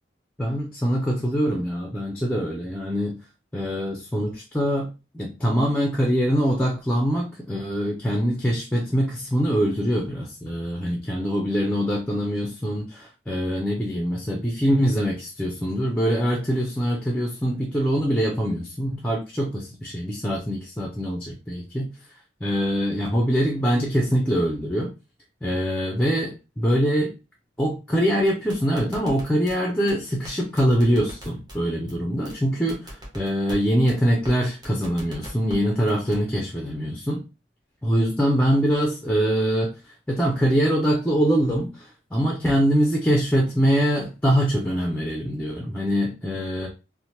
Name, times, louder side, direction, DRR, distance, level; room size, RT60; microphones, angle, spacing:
voice 1, 0.4-3.2 3.5-21.9 22.4-24.9 25.4-27.1 27.6-37.2 37.8-39.7 40.1-46.7, equal, 5° left, 0 dB, 0.4 m, -23 dB
sound 1, 28.3-29.6 29.9-30.0 30.2-30.3 30.6-31.6 31.9-32.0 32.3-32.4 32.7-33.6 33.9-34.0 34.2-34.3 34.6-35.6 35.9-36.2, equal, 25° right, 0.8 m, -39 dB
2.9 x 2.1 x 2.9 m, 0.30 s
head